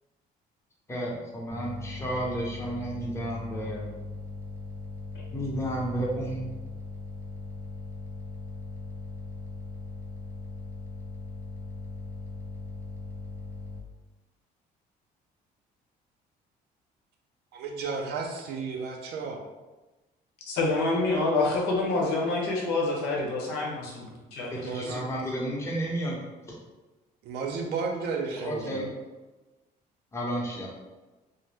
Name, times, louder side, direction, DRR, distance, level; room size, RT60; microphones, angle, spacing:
voice 1, 0.9-4.0 5.3-6.4 24.5-26.2 28.4-28.9 30.1-30.7, right 1 dB, 15° left, -3 dB, 0.7 m, -32 dB
sound 1, 1.5-13.8, left 3 dB, 15° right, 0.4 m, -39 dB
voice 2, 17.5-19.4 24.6-25.3 27.2-28.9, right 4 dB, 75° right, 2 dB, 0.5 m, -33 dB
voice 3, 20.5-24.5, left 2 dB, 85° left, -2 dB, 0.8 m, -27 dB
2.6 x 2.0 x 3.3 m, 1.1 s
cardioid pair, 110°, 17 cm